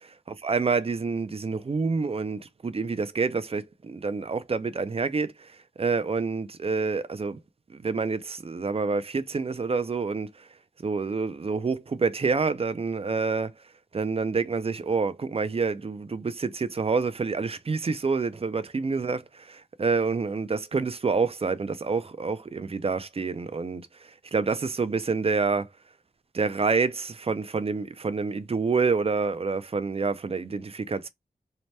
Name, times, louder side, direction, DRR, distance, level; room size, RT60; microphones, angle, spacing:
voice 1, 0.4-5.3 5.8-7.4 7.8-10.3 10.8-13.5 13.9-19.2 19.5-23.9 24.3-25.7 26.3-31.1, right 4 dB, 35° right, 0.3 m, -27 dB
2.8 x 2.1 x 3.1 m
wide cardioid pair, 60°, 16 cm